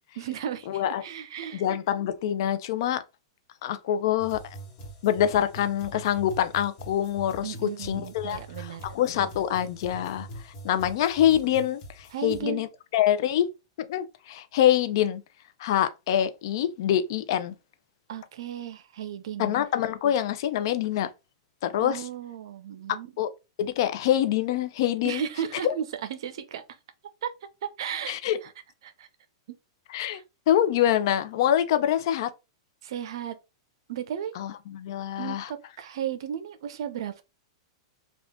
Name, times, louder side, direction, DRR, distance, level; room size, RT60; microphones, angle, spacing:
voice 1, 0.2-1.6 7.4-8.9 12.1-12.6 18.1-19.6 21.8-23.1 25.0-26.8 27.2-27.3 27.6-28.2 28.4-28.5 28.8-29.1 29.5-29.6 30.0-30.2 32.8-33.4 33.9-34.3 35.2-37.2, right 9 dB, 70° right, 0.6 m, -35 dB
voice 2, 0.7-1.0 1.5-3.0 3.6-4.4 5.0-10.3 10.6-12.7 12.9-13.5 13.9-15.2 15.6-17.5 19.4-21.1 21.6-22.0 23.2-23.3 23.6-25.2 25.6-25.7 28.1-28.4 29.9-30.2 30.5-32.3 34.4-35.5, left 11 dB, 60° left, 0.5 m, -25 dB
sound 1, 4.2-12.4, right 1 dB, 35° left, 1.2 m, -43 dB
3.5 x 2.4 x 3.6 m
hypercardioid pair, 140°, 3 cm